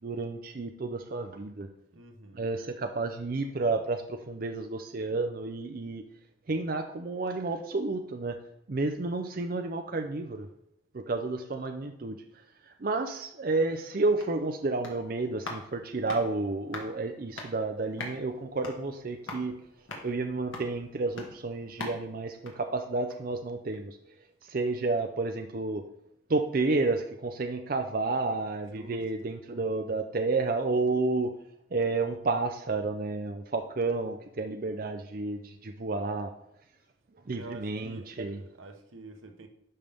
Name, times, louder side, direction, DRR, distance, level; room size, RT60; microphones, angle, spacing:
voice 1, 0.0-1.7 2.3-6.0 6.5-8.4 8.7-10.5 10.9-12.2 12.6-19.5 20.0-24.0 24.4-25.8 26.3-31.3 31.7-36.3 37.3-38.4, right 3 dB, 45° right, 0.5 m, -31 dB
voice 2, 1.9-2.5 28.7-29.0 37.3-39.5, right 2 dB, 85° right, 0.9 m, -47 dB
sound 1, 14.0-23.4 23.7-23.8, left 2 dB, 80° left, 1.8 m, -45 dB
11.0 x 5.4 x 3.5 m
head